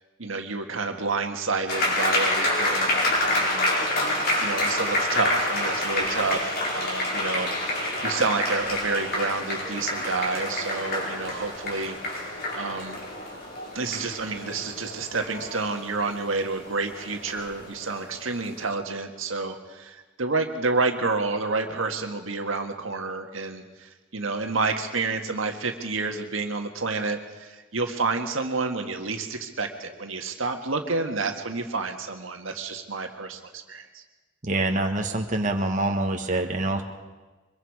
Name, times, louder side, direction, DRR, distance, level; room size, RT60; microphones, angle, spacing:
voice 1, 0.2-3.7 4.4-12.0 12.5-13.0 13.7-34.0, right 3 dB, 80° right, 4 dB, 1.7 m, -29 dB
sound 1, 1.7-18.3, left 1 dB, 50° left, 4.9 m, -28 dB
voice 2, 34.4-36.8, right 2 dB, 40° right, 3 dB, 1.5 m, -25 dB
24.0 x 22.0 x 4.9 m, 1.2 s
head